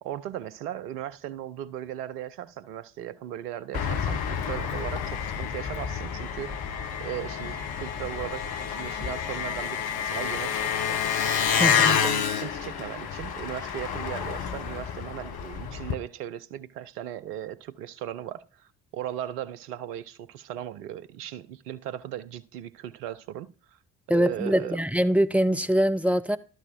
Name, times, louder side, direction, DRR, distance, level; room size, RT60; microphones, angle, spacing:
voice 1, 0.0-6.6 7.0-11.0 11.6-23.8 24.1-24.8, right 11 dB, 80° right, 0.7 m, -37 dB
Engine, 3.7-15.9, left 7 dB, 50° left, 1.1 m, -29 dB
voice 2, 11.6-12.0 24.1-26.4, equal, 5° right, 0.6 m, -23 dB
12.0 x 4.6 x 4.5 m
figure-of-eight pair, 40°, 46 cm